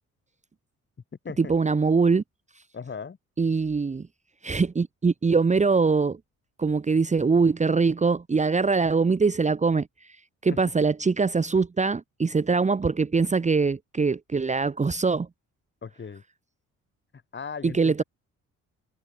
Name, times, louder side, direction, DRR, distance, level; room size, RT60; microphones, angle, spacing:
voice 1, 1.4-2.2 3.4-4.1 4.4-6.2 6.6-9.9 10.4-15.3 17.6-18.0, right 4 dB, 25° right, 1.1 m, -23 dB
voice 2, 2.7-3.2 15.8-16.2 17.3-18.0, left 6 dB, 40° left, 4.3 m, -37 dB
cardioid pair, 90°, 30 cm